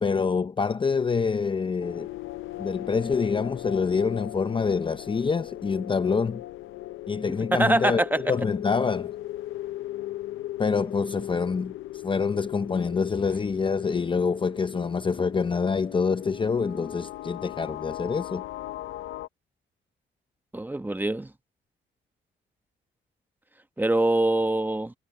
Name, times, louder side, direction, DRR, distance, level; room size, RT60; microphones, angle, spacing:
voice 1, 0.0-2.1 2.6-6.4 7.1-9.1 10.6-11.7 12.0-18.4, left 5 dB, 25° left, 0.6 m, -26 dB
sound 1, 1.8-19.3, left 15 dB, 80° left, 0.7 m, -38 dB
voice 2, 7.5-8.2 20.5-21.3 23.8-24.9, right 2 dB, 10° right, 1.1 m, -24 dB
cardioid pair, 105°, 20 cm